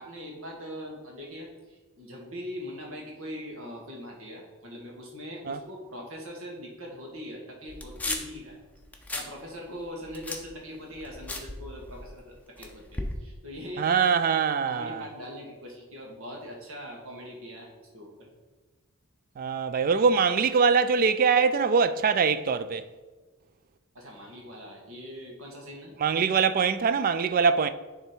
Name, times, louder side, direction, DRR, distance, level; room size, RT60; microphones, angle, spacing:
voice 1, 0.0-8.6 9.1-14.1 14.6-18.3 23.9-25.9, equal, 70° right, 1.8 m, -41 dB
sound 1, 7.7-8.4 8.8-9.3 9.7-12.2 12.6-13.2, left 2 dB, 5° left, 0.6 m, -36 dB
voice 2, 13.8-15.1 19.4-22.9 26.0-27.7, right 5 dB, 40° right, 0.3 m, -23 dB
9.9 x 3.5 x 4.4 m
head